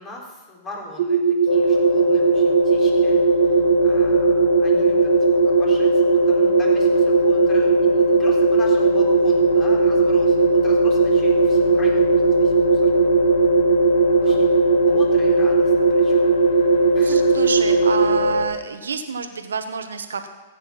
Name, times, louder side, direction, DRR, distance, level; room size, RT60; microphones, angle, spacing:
voice 1, 0.0-5.1 5.4-12.9 14.2-14.6 14.9-17.5, left 2 dB, 25° left, -1 dB, 4.0 m, -41 dB
sound 1, 1.0-18.2, right 6 dB, 65° right, 1.7 m, -18 dB
sound 2, 1.5-18.5, left 2 dB, 75° left, 2.3 m, -22 dB
voice 2, 17.0-20.3, right 5 dB, 90° right, 8 dB, 1.0 m, -28 dB
14.5 x 8.9 x 5.9 m, 1.2 s
hypercardioid pair, 120°, 0 cm